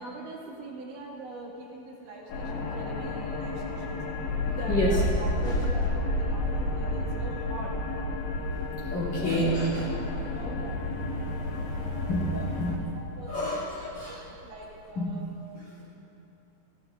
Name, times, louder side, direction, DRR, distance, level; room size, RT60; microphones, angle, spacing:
voice 1, 0.0-4.0 4.5-7.7 8.9-9.5 10.0-10.8 11.1-12.1 13.0-13.5 14.1-15.3, right 2 dB, 75° right, -3 dB, 4.2 m, -42 dB
voice 2, 2.2-2.7 4.4-5.0 5.4-5.7 8.9-9.9 11.5-11.6 12.1-12.8 13.3-14.2 14.9-15.2 15.5-15.7, equal, 45° left, -6 dB, 2.9 m, -30 dB
sound 1, 2.3-12.8, left 4 dB, 80° left, 3.6 m, -33 dB
sound 2, 4.7-14.8, right 2 dB, 55° right, 2.8 m, -33 dB
21.5 x 16.5 x 2.4 m, 2.9 s
omnidirectional pair, 5.3 m